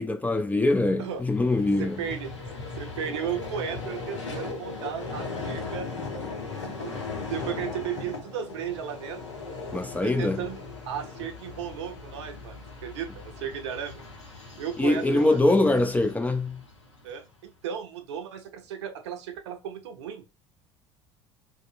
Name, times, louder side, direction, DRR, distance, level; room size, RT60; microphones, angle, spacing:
voice 1, 0.0-2.0 9.7-10.4 14.8-16.6, left 2 dB, 10° left, 0.3 m, -23 dB
Vehicle, 0.9-17.2, left 3 dB, 85° left, 0.6 m, -38 dB
voice 2, 1.8-2.3 2.8-5.9 6.6-9.2 10.0-10.6 10.9-14.0 14.6-15.4 17.0-20.2, right 8 dB, 75° right, 0.5 m, -35 dB
2.6 x 2.0 x 2.5 m
hypercardioid pair, 65°, 15 cm